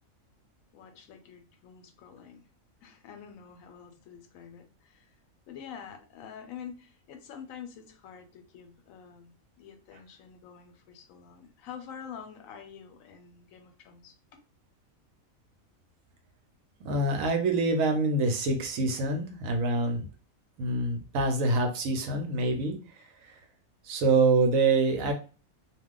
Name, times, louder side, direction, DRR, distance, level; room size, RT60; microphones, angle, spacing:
voice 1, 0.7-2.5 2.8-5.1 5.5-14.1, left 7 dB, 80° left, 5 dB, 1.0 m, -47 dB
voice 2, 16.8-20.0 20.6-23.4 23.8-25.1, right 3 dB, 75° right, 5 dB, 1.0 m, -26 dB
2.4 x 2.2 x 3.6 m, 0.36 s
omnidirectional pair, 1.4 m